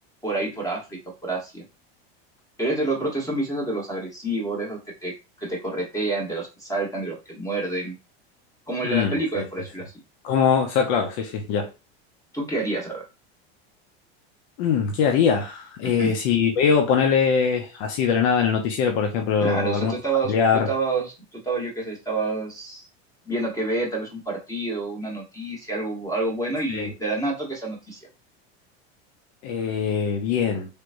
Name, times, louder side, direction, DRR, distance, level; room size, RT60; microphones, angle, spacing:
voice 1, 0.2-1.6 2.6-5.1 5.4-7.9 8.7-9.9 12.3-13.0 15.8-16.2 19.4-20.3 20.7-22.9 23.2-28.0, right 2 dB, 10° left, 1.2 m, -28 dB
voice 2, 8.8-9.4 10.2-11.7 14.6-19.9 20.3-20.7 26.7-26.9 29.4-30.7, left 6 dB, 70° left, 0.8 m, -22 dB
3.4 x 2.9 x 2.5 m
supercardioid pair, 120°, 32 cm